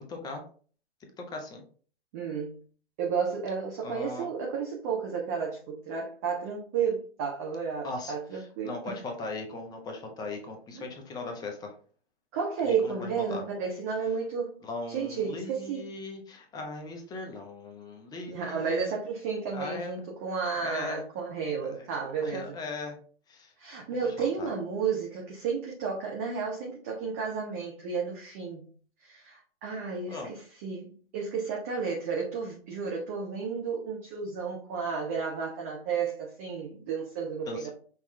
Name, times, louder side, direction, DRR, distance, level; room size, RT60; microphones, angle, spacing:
voice 1, 0.1-0.4 1.2-1.6 3.8-4.3 7.8-11.7 12.6-13.4 14.6-18.9 19.5-20.0 20.6-21.1 21.6-21.8 22.2-23.0 23.3-23.5 24.2-24.5 30.1-30.3 37.5-37.7, left 3 dB, 10° left, 0.7 m, -39 dB
voice 2, 2.1-2.6 3.0-9.0 10.7-10.9 12.3-14.5 14.9-15.9 18.3-22.5 23.6-28.7 29.0-37.7, right 5 dB, 15° right, 0.3 m, -32 dB
5.6 x 2.3 x 3.1 m
hypercardioid pair, 125°, 32 cm